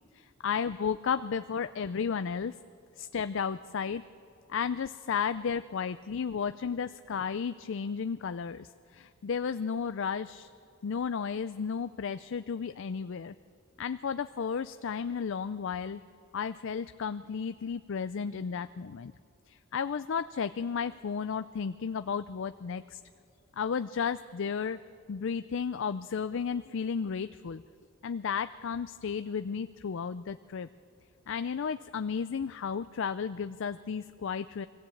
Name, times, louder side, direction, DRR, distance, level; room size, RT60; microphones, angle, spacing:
voice 1, 0.1-2.6 3.0-4.0 4.5-10.5 10.8-13.3 13.8-16.0 16.3-19.1 19.5-23.0 23.6-24.8 25.1-27.6 28.0-30.7 31.3-34.7, left 6 dB, 65° left, 12 dB, 0.4 m, -33 dB
23.5 x 16.0 x 8.5 m, 2.4 s
head